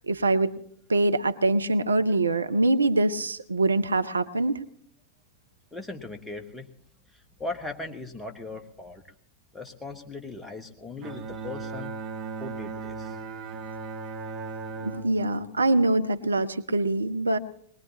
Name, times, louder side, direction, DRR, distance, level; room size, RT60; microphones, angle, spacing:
voice 1, 0.1-0.5 0.9-4.6 14.8-17.4, right 2 dB, 75° right, 11 dB, 0.6 m, -24 dB
voice 2, 5.7-6.7 7.4-9.0 9.5-11.9 12.4-13.2, left 2 dB, 10° left, 4 dB, 1.5 m, -38 dB
Bowed string instrument, 11.0-16.5, right 4 dB, 35° right, 1.2 m, -37 dB
22.0 x 19.5 x 2.9 m, 0.65 s
figure-of-eight pair, 90°, 0 cm